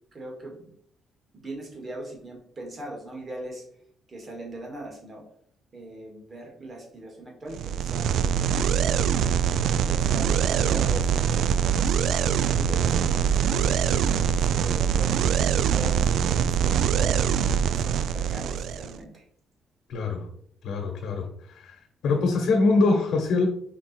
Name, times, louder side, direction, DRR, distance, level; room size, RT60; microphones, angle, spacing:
voice 1, 0.1-0.7 1.3-3.6 4.1-5.2 5.7-9.1 9.8-17.2 17.6-19.2, right 1 dB, 35° right, 0 dB, 2.1 m, -40 dB
sound 1, 7.5-19.0, right 8 dB, 75° right, 0.3 m, -23 dB
voice 2, 19.9-20.2 20.6-21.7 22.0-23.5, left 3 dB, 70° left, 2 dB, 1.3 m, -23 dB
5.2 x 4.2 x 4.4 m, 0.65 s
cardioid pair, 125°, 0 cm